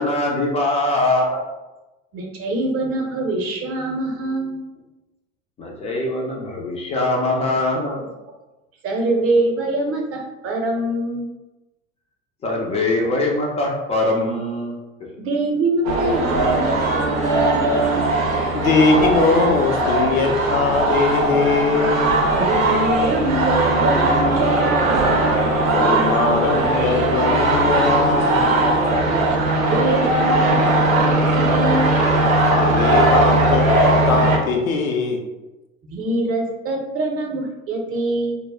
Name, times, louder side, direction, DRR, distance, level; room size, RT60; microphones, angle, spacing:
voice 1, 0.0-1.4 5.6-8.1 12.4-14.8, left 2 dB, 20° left, -1 dB, 0.3 m, -22 dB
voice 2, 2.1-4.6 8.8-11.3 15.2-18.2 22.3-25.3 29.1-31.9 35.9-38.4, right 2 dB, 35° right, 1 dB, 0.6 m, -24 dB
sound 1, 15.8-34.4, right 2 dB, 90° right, 0.6 m, -19 dB
voice 3, 18.5-22.2 25.7-28.7 32.2-35.2, left 4 dB, 85° left, 2 dB, 0.5 m, -21 dB
2.3 x 2.1 x 3.3 m, 1.0 s
figure-of-eight pair, 75°, 40 cm